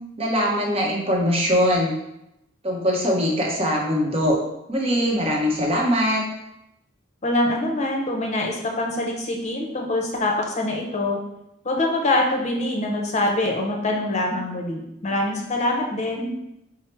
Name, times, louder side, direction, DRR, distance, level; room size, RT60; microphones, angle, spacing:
voice 1, 0.2-1.9 2.6-4.4 4.7-6.2, equal, 30° right, -2 dB, 0.9 m, -21 dB
voice 2, 7.2-11.2 11.6-16.3, left 1 dB, 35° left, 0 dB, 0.7 m, -24 dB
4.7 x 2.0 x 4.4 m, 0.85 s
head